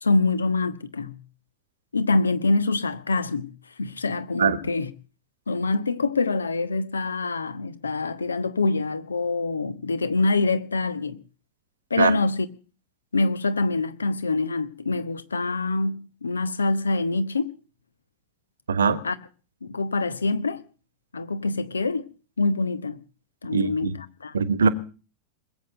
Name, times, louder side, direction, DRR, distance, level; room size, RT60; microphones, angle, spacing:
voice 1, 0.0-1.2 1.9-3.5 3.8-4.9 5.5-11.2 11.9-12.5 13.1-17.5 19.0-19.2 19.6-20.6 21.1-22.1 22.4-23.0 23.4-24.0 24.2-24.3, left 3 dB, 75° left, 1.1 m, -25 dB
voice 2, 18.7-19.0 23.5-23.9 24.3-24.7, right 5 dB, 70° right, 1.2 m, -21 dB
21.5 x 8.3 x 7.8 m
figure-of-eight pair, 90°, 0 cm